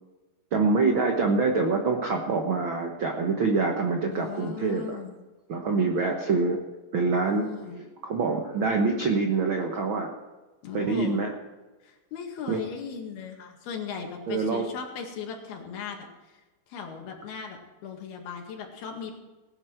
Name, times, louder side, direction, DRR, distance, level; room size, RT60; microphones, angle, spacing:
voice 1, 0.5-5.0 5.5-6.6 6.9-10.2 10.7-11.3 12.5-12.6 14.3-14.7, right 4 dB, 75° right, 2 dB, 1.1 m, -25 dB
voice 2, 4.1-5.2 7.2-7.8 10.6-11.2 11.8-16.4 16.7-19.1, left 6 dB, 85° left, 2 dB, 3.9 m, -38 dB
19.0 x 10.0 x 4.6 m, 1.2 s
omnidirectional pair, 4.4 m